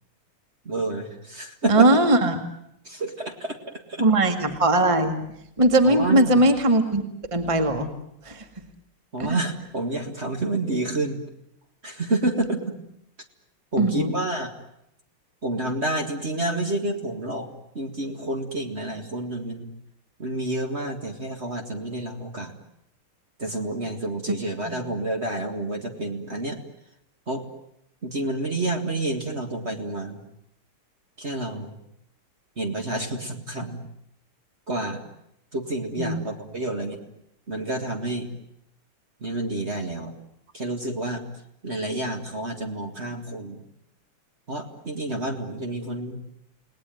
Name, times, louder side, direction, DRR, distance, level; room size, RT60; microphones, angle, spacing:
voice 1, 0.7-1.9 2.8-4.0 5.8-6.4 9.1-11.2 11.8-12.8 13.7-14.5 15.4-17.5 17.7-19.7 20.2-22.5 23.4-26.6 27.3-27.4 28.0-30.2 31.2-31.8 32.6-33.8 34.7-35.1 35.5-37.0 37.5-38.3 39.2-40.1 40.5-41.3 41.6-43.6 44.5-46.2, right 2 dB, 30° right, 3 dB, 2.2 m, -29 dB
voice 2, 1.7-2.4 4.0-5.2 5.6-7.0 7.3-7.9 8.2-8.5 9.2-9.3 13.8-14.1 24.7-24.8 36.0-36.2, right 1 dB, 15° right, 6 dB, 2.0 m, -19 dB
29.5 x 19.5 x 9.2 m, 0.79 s
omnidirectional pair, 2.3 m